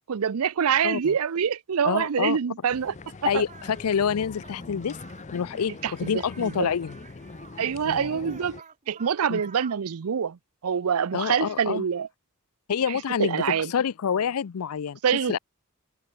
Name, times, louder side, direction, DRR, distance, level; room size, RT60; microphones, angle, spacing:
voice 1, 0.1-2.9 3.2-3.4 5.8-6.7 7.6-8.6 8.9-10.4 10.6-12.1 12.9-13.7 15.0-15.4, right 7 dB, 85° right, 0.5 m, -26 dB
voice 2, 0.8-1.1 1.8-2.4 3.3-5.0 5.3-7.0 7.9-8.3 9.3-9.4 11.1-11.8 12.7-15.0 15.3-15.4, left 7 dB, 90° left, 0.5 m, -27 dB
sound 1, 2.7-8.6, left 3 dB, 35° left, 0.6 m, -42 dB
sound 2, 3.4-7.6 8.1-9.9, right 6 dB, 35° right, 1.7 m, -50 dB
head